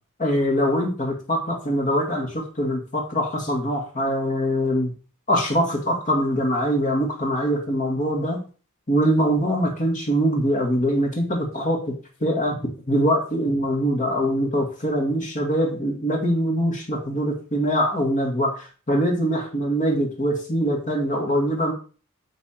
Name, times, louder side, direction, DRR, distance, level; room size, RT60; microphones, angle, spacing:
voice 1, 0.2-4.9 5.3-8.4 8.9-11.8 12.2-21.7, equal, 35° left, 1 dB, 2.0 m, -23 dB
8.9 x 4.1 x 4.5 m, 0.36 s
head